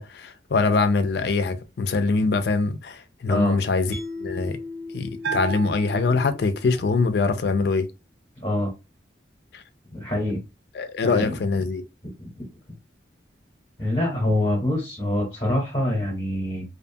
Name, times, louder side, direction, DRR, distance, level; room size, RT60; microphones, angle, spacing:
voice 1, 0.0-4.6 4.9-7.9 9.5-9.6 10.7-11.8, left 4 dB, 60° left, 0.4 m, -23 dB
voice 2, 3.3-3.6 8.4-8.7 9.9-10.4 11.0-11.3 12.2-12.5 13.8-16.6, left 1 dB, 25° left, 0.8 m, -25 dB
Mallet percussion, 3.9-7.2, left 3 dB, 35° right, 0.7 m, -38 dB
Bell, 5.2-6.9, right 6 dB, 70° right, 0.3 m, -33 dB
2.5 x 2.2 x 2.6 m
head